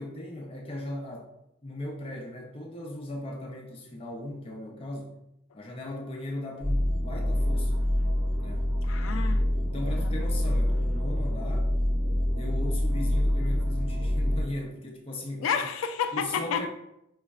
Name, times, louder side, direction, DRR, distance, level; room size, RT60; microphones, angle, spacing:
voice 1, 0.0-1.3 1.6-5.2 5.5-7.8 8.4-8.7 9.6-11.7 12.3-15.6 16.1-16.7, left 1 dB, 30° left, 0 dB, 0.5 m, -37 dB
sound 1, 6.6-14.4, left 1 dB, 75° right, 0.8 m, -26 dB
voice 2, 8.8-9.4 10.0-10.1 15.4-16.7, left 7 dB, 80° left, 8 dB, 0.3 m, -30 dB
5.1 x 2.1 x 2.3 m, 0.83 s
head